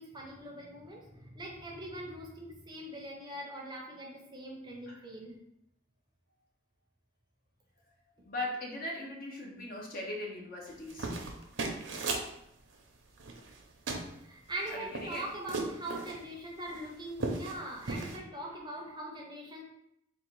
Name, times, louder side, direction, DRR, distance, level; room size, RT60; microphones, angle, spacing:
voice 1, 0.0-5.4 14.2-19.6, right 1 dB, 20° right, -1 dB, 0.6 m, -42 dB
voice 2, 8.2-11.2 14.7-15.3, left 1 dB, 45° left, -1 dB, 0.8 m, -39 dB
sound 1, 10.7-12.3 13.2-13.6 13.9-14.1 14.5-16.2 16.7-16.8 17.1-17.6 17.9-18.2, right 3 dB, 70° right, 0.6 m, -36 dB
3.8 x 2.4 x 4.6 m, 0.78 s
head